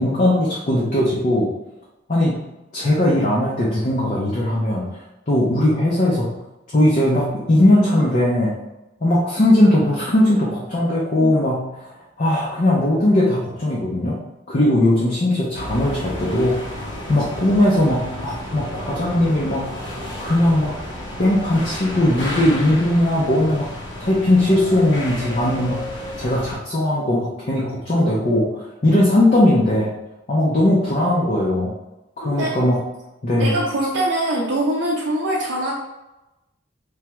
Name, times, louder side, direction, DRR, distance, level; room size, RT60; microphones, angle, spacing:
voice 1, 0.0-1.5 2.1-2.3 2.7-4.9 5.3-6.3 6.7-8.6 9.0-11.9 12.2-14.2 14.5-19.7 20.2-20.7 21.2-23.7 24.0-28.5 28.8-29.9 30.3-31.7 32.2-32.8 33.2-33.6, left 1 dB, 40° left, -5 dB, 0.5 m, -19 dB
sound 1, 15.5-26.6, left 1 dB, 70° left, 0.8 m, -32 dB
voice 2, 32.2-32.6 33.4-35.7, right 1 dB, 75° right, -4 dB, 0.5 m, -23 dB
3.3 x 2.3 x 2.9 m, 0.96 s
head